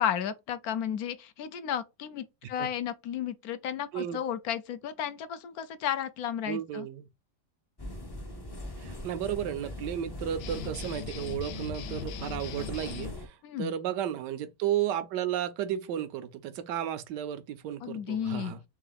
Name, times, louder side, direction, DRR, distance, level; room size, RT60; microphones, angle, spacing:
voice 1, 0.0-6.9 13.4-13.7 17.8-18.5, left 9 dB, 70° left, 1.0 m, -33 dB
voice 2, 6.5-7.1 8.8-18.6, right 10 dB, 80° right, 1.3 m, -33 dB
sound 1, 7.8-13.3, left 1 dB, 30° left, 0.4 m, -40 dB
sound 2, 10.4-13.1, left 10 dB, 85° left, 0.6 m, -41 dB
3.7 x 3.0 x 3.9 m
omnidirectional pair, 1.8 m